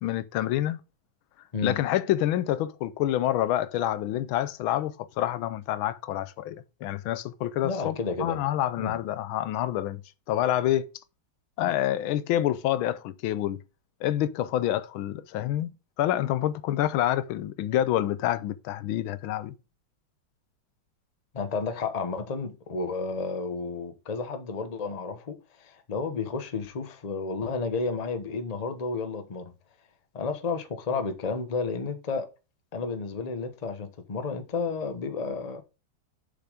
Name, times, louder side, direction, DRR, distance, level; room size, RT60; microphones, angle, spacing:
voice 1, 0.0-0.8 1.6-10.0 10.3-10.9 11.6-13.6 14.0-15.7 16.0-19.5, left 12 dB, 85° left, 1.4 m, -27 dB
voice 2, 7.6-8.4 8.8-9.0 21.3-29.5 30.1-32.3 32.7-35.6, left 4 dB, 30° left, 0.7 m, -32 dB
6.9 x 5.8 x 5.0 m
omnidirectional pair, 2.2 m